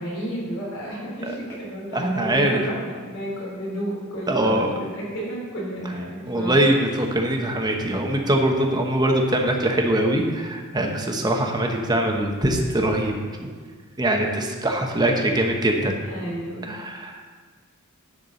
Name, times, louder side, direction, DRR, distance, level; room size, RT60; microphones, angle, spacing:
voice 1, 0.0-6.6 16.1-16.7, right 1 dB, 70° left, -5 dB, 3.1 m, -31 dB
voice 2, 1.9-2.6 4.3-4.7 6.3-13.5 14.0-16.0 16.6-17.3, right 1 dB, 20° right, 2 dB, 1.0 m, -22 dB
10.5 x 4.7 x 6.9 m, 1.5 s
head